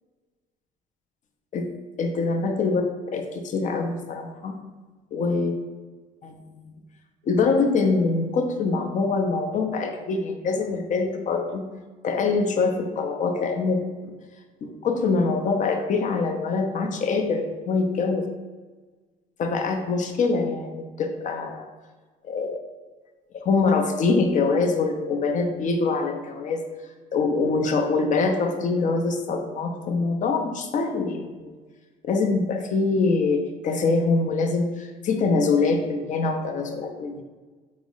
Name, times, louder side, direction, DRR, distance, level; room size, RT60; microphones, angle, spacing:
voice 1, 2.0-2.8 3.1-4.6 5.1-5.5 6.2-6.7 7.3-11.6 12.0-13.8 14.6-18.2 19.4-21.6 22.2-22.6 23.3-26.6 27.1-31.5 32.0-37.2, left 4 dB, 50° left, 4 dB, 0.6 m, -24 dB
4.8 x 2.0 x 3.8 m, 1.3 s
cardioid pair, 110°, 17 cm